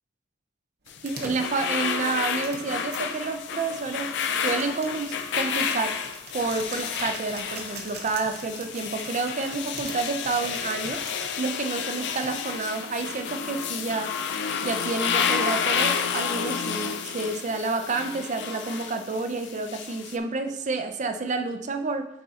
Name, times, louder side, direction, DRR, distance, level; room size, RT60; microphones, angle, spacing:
sound 1, 0.9-20.2, left 7 dB, 60° left, 0.5 m, -30 dB
sound 2, 0.9-3.0 3.8-11.3 12.1-12.6, right 3 dB, 55° right, 0.9 m, -42 dB
voice 1, 1.0-6.0 6.3-11.0 11.4-14.1 14.6-22.1, right 3 dB, 40° right, 7 dB, 0.5 m, -29 dB
9.4 x 3.8 x 2.8 m, 0.83 s
head